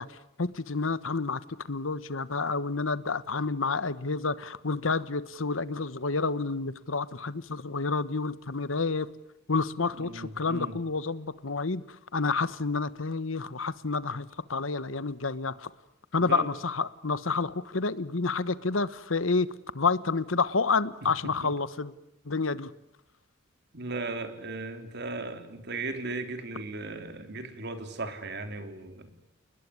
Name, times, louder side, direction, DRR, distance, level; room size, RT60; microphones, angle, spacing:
voice 1, 0.0-1.4 1.7-9.1 9.5-11.8 12.1-15.7 16.1-19.5 19.7-21.9 22.2-22.7, left 4 dB, 85° left, 16 dB, 1.2 m, -29 dB
voice 2, 9.9-10.8 16.2-16.5 21.0-21.5 23.7-29.1, right 2 dB, 60° right, 8 dB, 3.4 m, -37 dB
30.0 x 20.5 x 9.8 m, 0.83 s
head